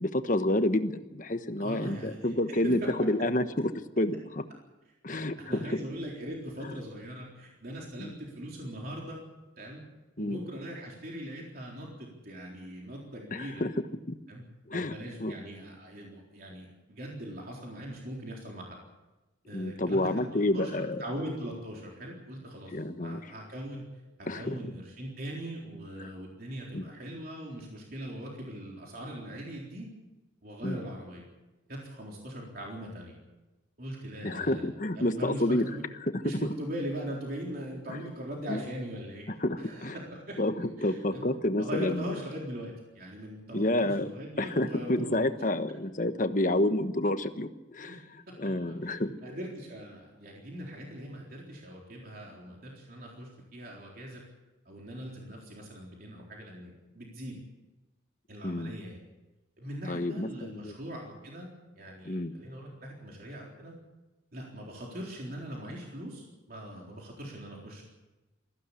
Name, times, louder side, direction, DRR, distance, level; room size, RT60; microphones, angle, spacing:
voice 1, 0.0-4.4 5.0-5.6 6.6-6.7 8.0-8.1 10.2-10.4 13.3-13.7 14.7-14.9 15.2-15.4 19.5-21.0 22.7-23.2 24.3-24.6 26.0-26.1 26.7-26.9 30.6-30.8 34.2-35.6 36.0-36.1 37.9-38.0 38.5-38.6 39.4-39.9 40.4-42.1 43.5-44.1 44.4-48.0 48.4-49.1 58.4-58.7 59.9-60.7 62.0-62.3, left 1 dB, 40° left, 9 dB, 1.2 m, -29 dB
voice 2, 1.6-3.1 5.1-5.2 5.5-9.2 9.6-9.8 10.2-13.6 14.3-14.4 14.7-18.8 19.5-23.8 24.2-29.9 30.4-31.2 31.7-33.2 33.8-34.6 35.0-35.8 36.2-39.3 39.6-40.4 40.8-41.2 41.6-45.2 47.8-48.0 48.4-54.2 54.7-57.4 58.3-59.0 59.6-63.7 64.3-67.8, right 1 dB, 50° right, -2 dB, 3.9 m, -41 dB
21.5 x 15.5 x 8.4 m, 1.1 s
head